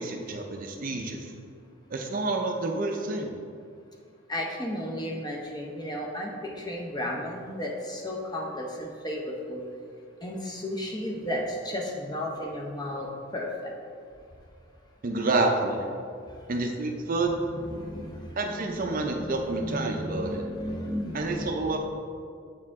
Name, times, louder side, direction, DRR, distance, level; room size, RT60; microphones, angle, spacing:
voice 1, 0.0-1.3 1.9-3.4 15.0-15.8 16.5-17.4 18.4-20.4 21.1-21.8, right 2 dB, 40° right, 3 dB, 0.4 m, -28 dB
voice 2, 4.3-9.6 10.2-13.7 17.5-21.7, left 1 dB, 20° left, -1 dB, 0.6 m, -34 dB
7.4 x 4.7 x 3.5 m, 2.3 s
head